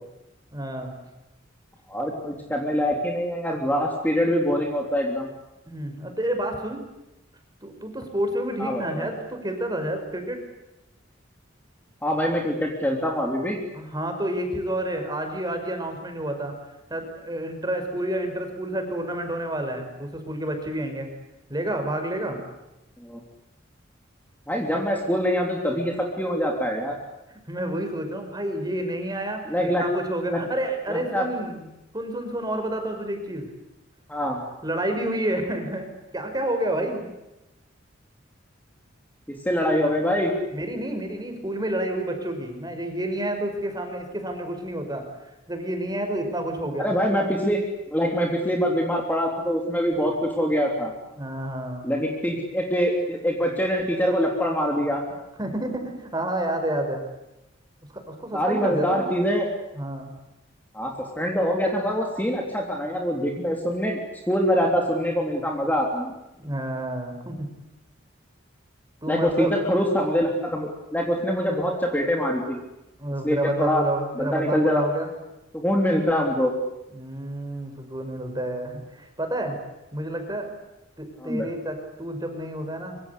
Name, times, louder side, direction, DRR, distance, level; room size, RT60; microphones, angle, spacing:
voice 1, 0.5-0.9 5.7-6.8 7.6-10.4 13.7-16.5 16.9-21.1 21.5-22.4 27.3-31.7 31.9-33.5 34.6-37.1 40.5-45.0 45.5-46.9 51.1-51.9 55.4-57.0 57.9-59.1 59.7-60.1 66.4-67.5 69.0-69.5 73.0-75.1 76.9-79.6 79.9-80.5 81.0-83.1, right 1 dB, 20° right, 5 dB, 5.5 m, -29 dB
voice 2, 1.9-5.3 8.6-9.1 12.0-13.6 23.0-23.2 24.5-26.9 29.5-29.8 30.3-30.4 30.9-31.3 34.1-34.4 39.4-40.3 46.8-47.6 47.9-50.9 51.8-55.0 58.3-59.5 60.7-64.0 64.3-66.1 69.1-72.6 73.2-73.8 74.2-74.8 75.5-76.5 81.2-81.5, equal, 10° left, 1 dB, 3.4 m, -24 dB
25.0 x 24.5 x 8.5 m, 0.94 s
head